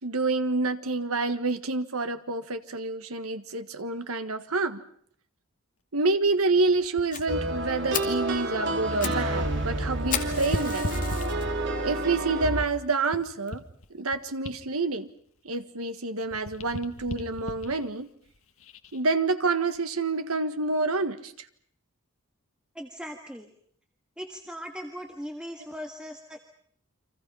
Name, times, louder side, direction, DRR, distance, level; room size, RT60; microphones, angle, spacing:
voice 1, 0.0-4.8 5.9-10.9 11.8-13.6 13.9-15.1 15.4-18.1 18.9-21.3, right 3 dB, 85° right, 9 dB, 1.6 m, -28 dB
sound 1, 6.7-9.4 9.7-11.8 12.4-15.9 16.2-19.0 19.6-19.8, left 1 dB, 70° left, 1.8 m, -40 dB
Fire, 7.1-7.2 7.6-7.7 7.9-8.2 8.7-9.2 9.5-9.6 10.1-11.4 12.0-12.1 12.7-12.8 13.0-13.1 13.5-13.6, left 8 dB, 40° left, 2.5 m, -33 dB
sound 2, 7.3-12.7, right 2 dB, 55° right, 2.7 m, -29 dB
voice 2, 22.7-23.5 24.2-26.4, equal, 5° right, 3 dB, 1.6 m, -39 dB
30.0 x 25.0 x 5.6 m, 0.62 s
head